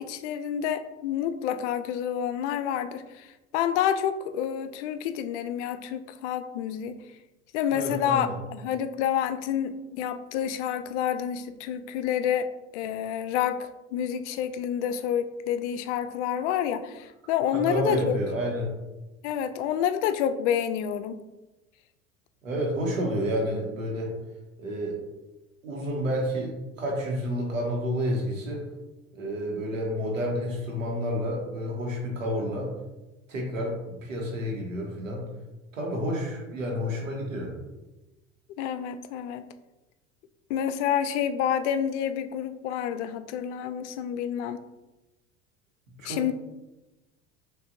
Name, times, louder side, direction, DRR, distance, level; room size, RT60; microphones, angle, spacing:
voice 1, 0.0-7.0 7.5-18.2 19.2-21.2 38.6-39.4 40.5-44.6 46.0-46.3, left 9 dB, 65° left, 10 dB, 0.5 m, -28 dB
voice 2, 7.7-8.3 17.5-18.7 22.4-24.2 24.6-25.0 25.6-28.6 29.1-32.7 33.3-35.3 35.7-37.6 46.0-46.3, equal, 85° right, -1 dB, 1.3 m, -30 dB
6.1 x 2.7 x 2.6 m, 1.1 s
hypercardioid pair, 75°, 38 cm